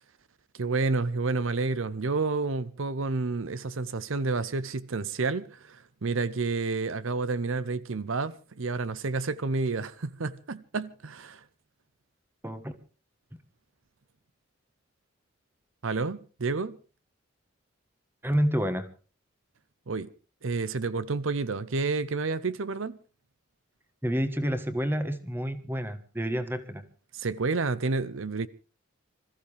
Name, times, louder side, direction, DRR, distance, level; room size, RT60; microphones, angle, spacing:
voice 1, 0.6-11.4 15.8-16.8 19.9-20.1 20.4-23.0 27.1-28.5, right 3 dB, 75° right, 0.7 m, -30 dB
voice 2, 18.2-18.9 24.0-26.8, equal, 10° right, 1.3 m, -29 dB
26.0 x 14.5 x 3.4 m
head